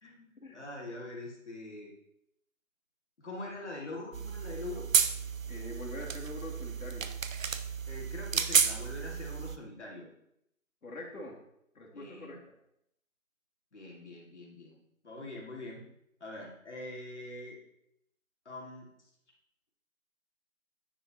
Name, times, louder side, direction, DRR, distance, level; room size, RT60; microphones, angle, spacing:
voice 1, 0.0-1.9 3.2-4.8 7.9-10.1 11.9-12.4 13.7-14.8 15.0-15.8 16.2-17.6 18.4-18.9, left 2 dB, 50° left, -2 dB, 1.9 m, -43 dB
sound 1, 4.1-9.6, right 6 dB, 65° right, 0.6 m, -31 dB
voice 2, 5.5-7.1 10.8-11.4 11.8-12.6, left 1 dB, 75° left, -2 dB, 2.1 m, -44 dB
9.7 x 4.5 x 2.8 m, 0.76 s
figure-of-eight pair, 175°, 43 cm